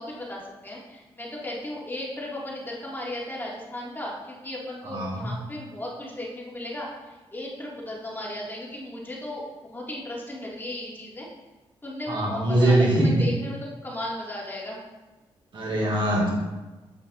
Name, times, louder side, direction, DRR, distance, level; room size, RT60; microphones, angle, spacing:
voice 1, 0.0-6.9 7.3-11.3 11.8-14.8, left 1 dB, 20° left, -4 dB, 2.1 m, -35 dB
voice 2, 4.8-5.3 12.1-13.3 15.5-16.3, right 1 dB, 55° right, -3 dB, 2.0 m, -22 dB
8.8 x 5.9 x 2.6 m, 1.2 s
cardioid pair, 75°, 10 cm